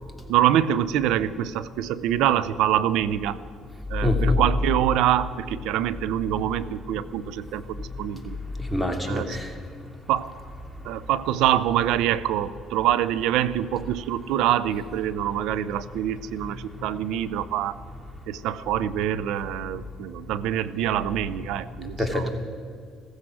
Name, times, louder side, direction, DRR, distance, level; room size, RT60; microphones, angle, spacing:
voice 1, 0.3-3.4 3.9-8.4 9.1-9.4 10.1-10.3 10.8-17.8 18.3-22.3, right 11 dB, 80° right, 16 dB, 0.6 m, -25 dB
voice 2, 4.0-4.4 8.6-9.5 22.0-22.3, left 2 dB, ahead, 3 dB, 2.7 m, -24 dB
15.5 x 14.5 x 6.3 m, 2.1 s
supercardioid pair, 80°, 0 cm